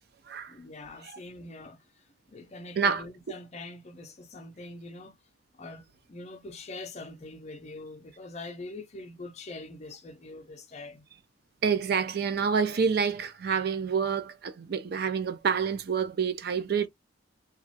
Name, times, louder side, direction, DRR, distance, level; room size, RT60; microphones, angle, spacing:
voice 1, 0.5-5.2 5.5-11.0, left 2 dB, 35° left, 0.5 m, -44 dB
voice 2, 11.6-16.9, right 6 dB, 55° right, 0.4 m, -27 dB
3.0 x 2.3 x 2.7 m
head